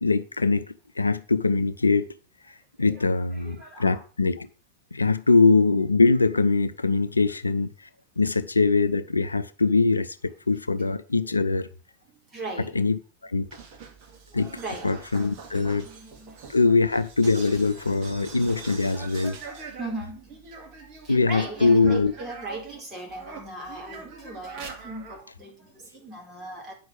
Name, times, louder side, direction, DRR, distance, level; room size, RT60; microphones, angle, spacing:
voice 1, 0.0-0.6 1.0-2.1 2.5-4.5 4.9-7.9 8.2-11.7 12.7-13.5 14.3-14.5 14.8-15.9 16.5-19.4 21.1-22.1, left 3 dB, 80° left, 0.6 m, -22 dB
voice 2, 2.8-4.0 11.2-11.3 12.0-12.8 14.1-14.9 15.5-16.5 19.4-26.7, right 2 dB, 25° right, 4.3 m, -39 dB
sound 1, 13.4-22.8 23.1-25.2, right 5 dB, 45° right, 2.2 m, -43 dB
9.3 x 6.2 x 6.7 m
figure-of-eight pair, 90°, 0 cm